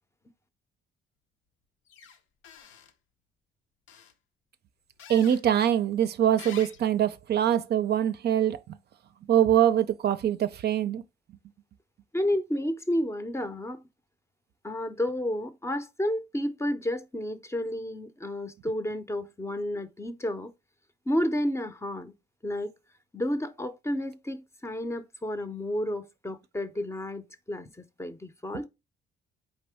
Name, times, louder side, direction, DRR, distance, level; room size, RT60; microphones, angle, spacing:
sound 1, 1.9-2.2 2.4-2.9 3.9-4.1 5.0-5.4 6.4-6.9, left 7 dB, 75° left, 0.7 m, -46 dB
voice 1, 5.1-8.8 9.3-11.0, right 10 dB, 55° right, 0.5 m, -24 dB
voice 2, 12.1-13.8 14.6-20.5 21.1-22.1 22.4-22.7 23.1-28.7, left 1 dB, 15° left, 0.6 m, -31 dB
4.1 x 3.7 x 3.4 m
cardioid pair, 90°, 20 cm